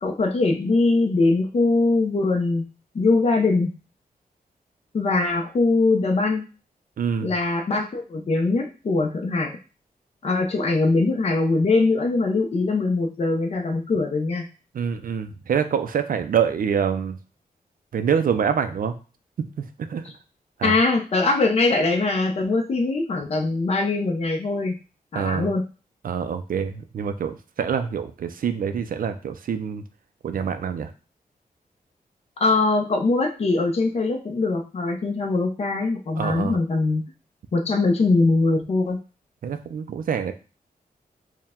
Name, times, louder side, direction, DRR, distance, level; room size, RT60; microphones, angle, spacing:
voice 1, 0.0-2.6 2.9-3.7 4.9-6.5 7.2-9.6 10.2-14.5 20.6-24.7 25.1-25.6 32.4-37.0 37.5-39.0, left 3 dB, 45° left, 3 dB, 0.5 m, -22 dB
voice 2, 7.0-7.3 14.7-17.2 17.9-19.0 19.6-20.0 20.6-20.7 25.1-25.5 26.0-29.8 30.2-30.9 36.2-36.6 39.4-40.3, right 7 dB, 65° right, 9 dB, 0.4 m, -26 dB
4.5 x 2.1 x 3.5 m, 0.34 s
wide cardioid pair, 130°, 15 cm